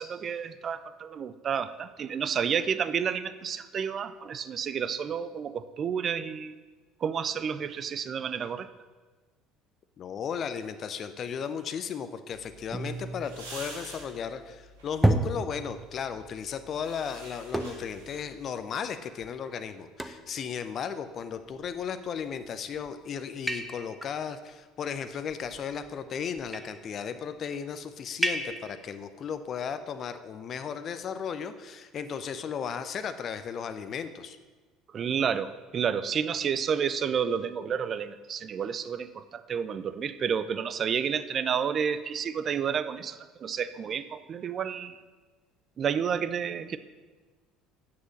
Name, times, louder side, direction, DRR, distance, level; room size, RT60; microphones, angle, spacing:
voice 1, 0.0-6.5 7.0-8.7 34.9-45.0 45.8-46.8, right 7 dB, 45° right, 13 dB, 0.5 m, -30 dB
voice 2, 10.0-34.4, left 7 dB, 45° left, 10 dB, 0.6 m, -35 dB
sound 1, 12.3-18.5, right 2 dB, 80° right, 1.9 m, -48 dB
sound 2, 12.7-14.2 15.0-16.0 17.5-18.1 18.6-18.7 19.2-19.3 20.0-20.4 21.5-21.9 22.6-22.9 23.5-24.2 25.3-25.9 26.4-26.8 28.2-28.8, right 1 dB, 5° right, 0.8 m, -31 dB
7.7 x 6.2 x 7.2 m, 1.3 s
hypercardioid pair, 65°, 0 cm